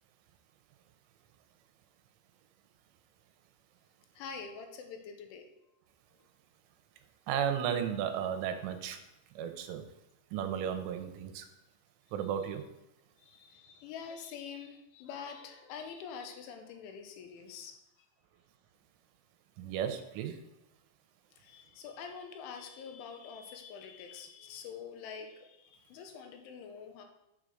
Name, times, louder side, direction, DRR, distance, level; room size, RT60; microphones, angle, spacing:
voice 1, 4.1-5.5 13.2-17.7 21.4-27.1, left 6 dB, 80° left, 5 dB, 3.3 m, -46 dB
voice 2, 7.3-9.0 9.4-9.8 10.3-11.5 12.1-12.7 19.6-20.4, right 8 dB, 80° right, 7 dB, 3.2 m, -34 dB
7.4 x 6.5 x 6.4 m, 0.89 s
omnidirectional pair, 5.6 m